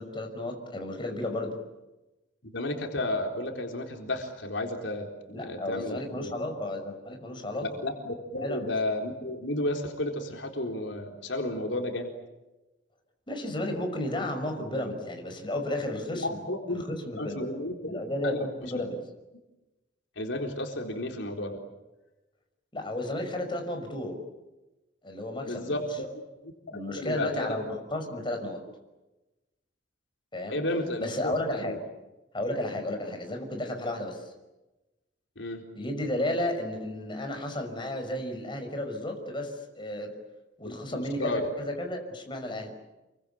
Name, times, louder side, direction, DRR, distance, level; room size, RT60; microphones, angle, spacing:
voice 1, 0.0-1.6 5.3-7.8 8.4-8.7 13.3-16.4 16.7-17.5 17.9-19.0 22.7-24.2 25.0-25.8 26.7-28.6 30.3-30.6 31.0-31.8 32.3-34.3 35.7-40.1 40.6-42.7, left 1 dB, 25° left, 4 dB, 5.9 m, -33 dB
voice 2, 2.4-6.3 7.6-12.1 16.1-16.8 17.2-18.0 18.2-18.5 20.2-21.6 25.5-26.5 27.0-27.6 30.5-31.8 35.4-35.6 40.6-41.4, left 1 dB, 80° left, 2 dB, 4.0 m, -33 dB
29.0 x 24.0 x 8.6 m, 1.0 s
head